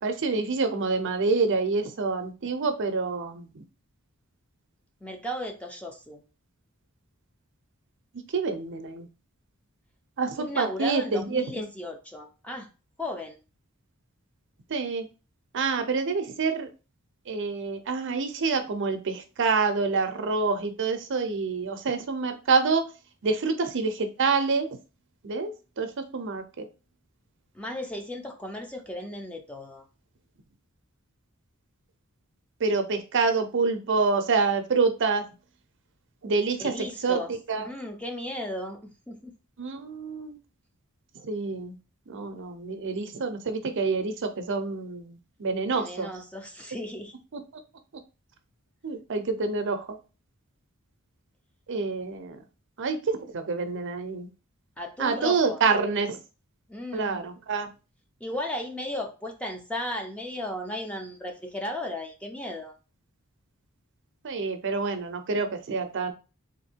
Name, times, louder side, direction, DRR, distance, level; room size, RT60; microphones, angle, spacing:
voice 1, 0.0-3.6 8.3-9.1 10.2-11.7 14.7-15.1 15.5-16.7 17.3-22.9 23.2-24.7 25.2-25.5 25.8-26.7 32.6-35.3 36.2-37.2 37.5-37.7 39.6-40.4 41.2-41.8 42.1-46.1 47.3-47.4 48.8-50.0 51.7-52.4 52.8-54.3 55.0-56.2 56.9-57.7 64.2-66.1, right 4 dB, 60° right, 7 dB, 0.6 m, -27 dB
voice 2, 5.0-6.2 10.5-12.7 13.0-13.4 27.5-29.9 36.6-39.3 45.7-47.1 54.8-55.6 56.7-57.2 58.2-62.7, left 1 dB, 5° left, 3 dB, 0.6 m, -35 dB
3.6 x 2.6 x 4.3 m, 0.32 s
head